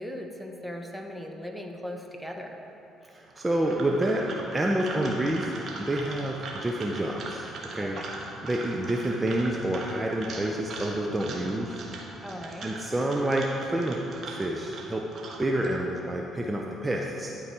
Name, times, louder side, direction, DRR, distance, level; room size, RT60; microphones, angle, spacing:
voice 1, 0.0-2.6 7.8-8.1 12.2-12.7, left 1 dB, ahead, 2 dB, 1.0 m, -38 dB
voice 2, 3.1-4.3 4.5-7.5 7.7-8.0 8.4-11.8 12.6-14.0 14.3-15.1 15.4-17.3, right 1 dB, 20° right, 0 dB, 0.7 m, -28 dB
sound 1, 3.3-15.7, right 3 dB, 55° right, 1.3 m, -40 dB
11.0 x 4.7 x 4.5 m, 2.9 s
hypercardioid pair, 60°, 0 cm